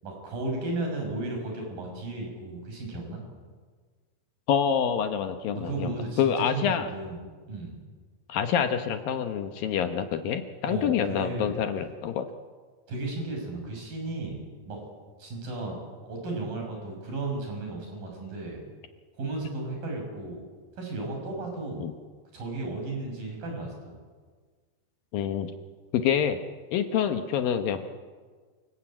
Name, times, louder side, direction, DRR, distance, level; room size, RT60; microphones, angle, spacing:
voice 1, 0.0-3.2 5.5-7.8 10.7-11.6 12.9-14.8 15.2-18.6 19.2-20.4 20.8-21.9 22.3-24.0, right 2 dB, 55° right, 2 dB, 8.0 m, -34 dB
voice 2, 4.5-6.9 8.3-12.3 21.8-21.9 25.1-25.5 25.9-26.4 26.7-27.9, left 8 dB, 70° left, 7 dB, 2.5 m, -27 dB
28.5 x 18.5 x 8.9 m, 1.5 s
omnidirectional pair, 4.9 m